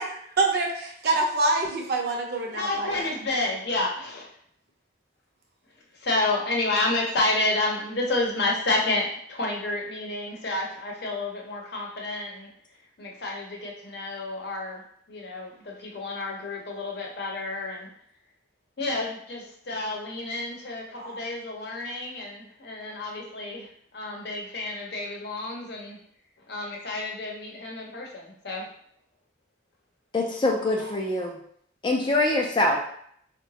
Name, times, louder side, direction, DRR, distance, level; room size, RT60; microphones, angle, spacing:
voice 1, 0.0-3.1 21.0-21.2, right 2 dB, 55° right, 1 dB, 0.6 m, -26 dB
voice 2, 2.5-4.3 6.0-12.5 13.0-14.8 15.1-17.9 18.8-26.0 26.5-28.7, left 2 dB, 60° left, -1 dB, 0.7 m, -30 dB
voice 3, 30.1-31.4 31.8-32.8, left 2 dB, 25° left, 0 dB, 0.3 m, -24 dB
3.8 x 2.2 x 2.7 m, 0.66 s
head